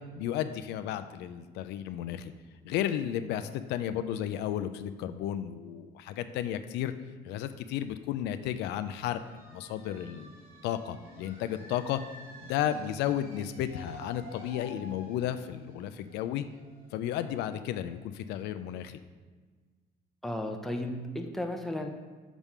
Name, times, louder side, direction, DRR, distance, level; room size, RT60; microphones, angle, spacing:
voice 1, 0.1-2.3 2.6-6.9 7.2-9.2 9.5-10.3 10.6-12.0 12.4-16.5 16.9-19.0, left 11 dB, 85° left, 10 dB, 0.4 m, -33 dB
sound 1, 8.8-18.3, equal, 60° right, 1.8 m, -51 dB
voice 2, 20.2-21.9, left 1 dB, ahead, 3 dB, 0.7 m, -34 dB
6.0 x 3.5 x 5.5 m, 1.4 s
cardioid pair, 110°, 17 cm